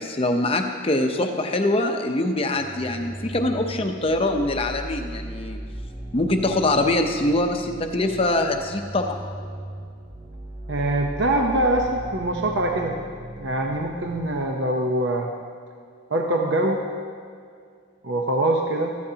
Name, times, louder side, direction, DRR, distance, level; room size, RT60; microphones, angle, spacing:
voice 1, 0.0-5.6 6.1-9.2, left 2 dB, 25° left, 5 dB, 0.7 m, -23 dB
sound 1, 2.5-14.5, right 1 dB, 30° right, 2.9 m, -38 dB
voice 2, 10.7-13.0 13.4-15.3 16.1-16.8 18.0-19.0, right 1 dB, 55° right, 1 dB, 0.8 m, -23 dB
15.5 x 13.0 x 2.8 m, 2.2 s
head